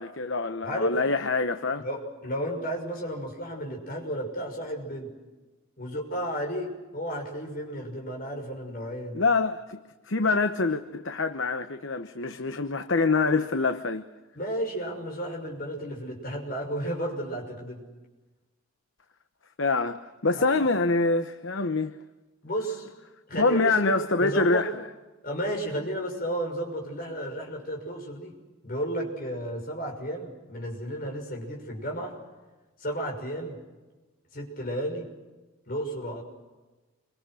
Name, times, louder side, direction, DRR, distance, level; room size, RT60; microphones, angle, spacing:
voice 1, 0.0-1.8 9.1-9.8 10.0-14.0 19.6-22.0 23.4-24.9, left 3 dB, 60° left, 9 dB, 1.0 m, -25 dB
voice 2, 0.6-1.0 1.8-5.1 5.8-9.2 14.3-17.8 20.3-20.7 22.4-22.9 23.3-23.9 24.2-24.7 25.2-28.3 28.6-32.1 32.8-33.6 34.3-35.0 35.7-36.2, right 1 dB, 40° left, 1 dB, 6.3 m, -33 dB
28.5 x 24.5 x 6.4 m, 1.2 s
head